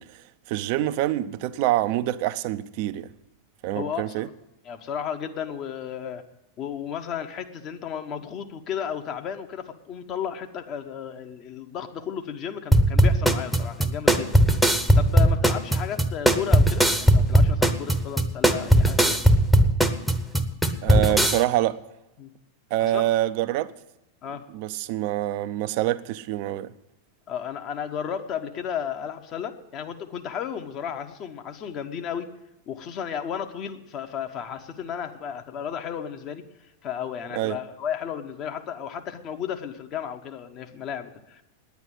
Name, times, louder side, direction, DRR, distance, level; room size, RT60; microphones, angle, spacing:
voice 1, 0.0-3.1 3.6-4.3 20.8-21.8 22.7-23.7 24.5-26.7 37.3-37.6, right 14 dB, 45° right, 0.5 m, -26 dB
voice 2, 3.7-4.3 4.6-6.2 6.6-19.2 20.9-21.3 22.2-22.3 22.8-23.1 24.2-24.5 27.3-32.3 32.7-36.4 36.8-41.4, left 8 dB, 35° left, 1.0 m, -34 dB
sound 1, 12.7-21.4, right 1 dB, ahead, 0.9 m, -19 dB
9.7 x 9.5 x 10.0 m
figure-of-eight pair, 90°, 0 cm